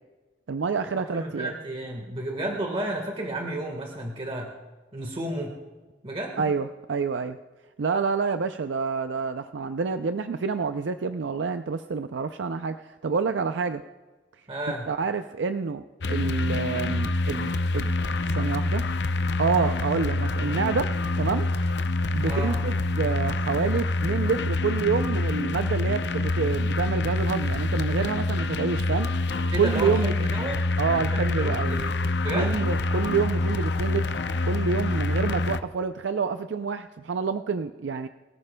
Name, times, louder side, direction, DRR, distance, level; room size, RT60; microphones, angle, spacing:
voice 1, 0.5-1.5 6.4-7.4 7.8-13.8 14.9-15.8 16.1-17.9 18.4-18.8 19.4-21.5 22.1-29.1 29.5-30.3 30.8-31.8 32.3-34.0 34.4-38.1, right 5 dB, 85° right, 9 dB, 0.5 m, -28 dB
voice 2, 1.1-4.5 4.9-5.6 6.0-6.5 14.5-14.9 22.2-22.6 29.5-30.6 30.9-31.9 32.2-32.7, right 1 dB, 30° right, 1 dB, 1.5 m, -32 dB
sound 1, 16.0-35.6, left 2 dB, 70° left, 0.6 m, -26 dB
24.0 x 14.0 x 2.2 m, 1.3 s
head